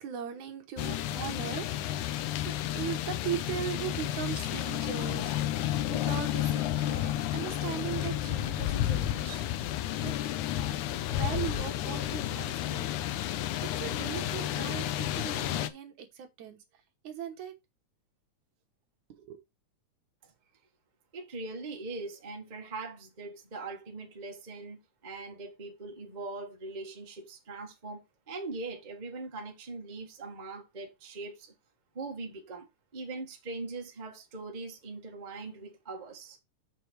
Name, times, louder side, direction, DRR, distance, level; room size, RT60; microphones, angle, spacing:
voice 1, 0.0-9.4 10.0-10.2 11.1-12.9 13.6-16.6 17.0-17.5 19.1-19.4, right 9 dB, 70° right, 2.5 m, -39 dB
sound 1, 0.8-15.7, left 12 dB, 80° left, 2.0 m, -31 dB
voice 2, 21.1-31.5 31.9-32.7 32.9-36.4, right 3 dB, 30° right, 0.8 m, -41 dB
6.6 x 6.0 x 4.5 m
omnidirectional pair, 3.8 m